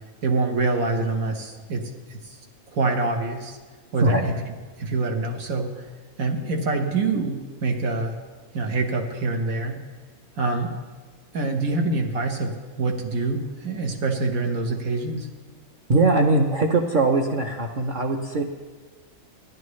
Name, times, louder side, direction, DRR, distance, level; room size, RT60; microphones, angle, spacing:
voice 1, 0.2-2.4 2.7-3.6 3.9-4.3 4.8-5.8 6.2-8.2 8.5-9.8 10.4-10.7 11.3-12.5 12.8-15.3, right 3 dB, 85° right, 2 dB, 1.7 m, -25 dB
voice 2, 15.9-18.4, right 3 dB, 50° right, 0 dB, 0.7 m, -21 dB
14.5 x 11.0 x 3.2 m, 1.4 s
omnidirectional pair, 1.4 m